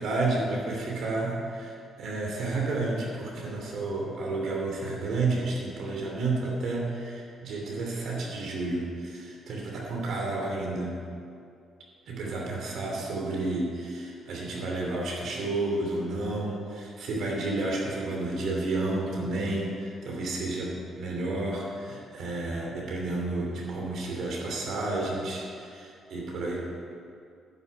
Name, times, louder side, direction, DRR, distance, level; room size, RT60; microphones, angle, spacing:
voice 1, 0.0-11.0 12.1-26.6, right 2 dB, 70° right, -2 dB, 2.7 m, -31 dB
11.0 x 5.8 x 8.6 m, 2.5 s
cardioid pair, 90°, 0 cm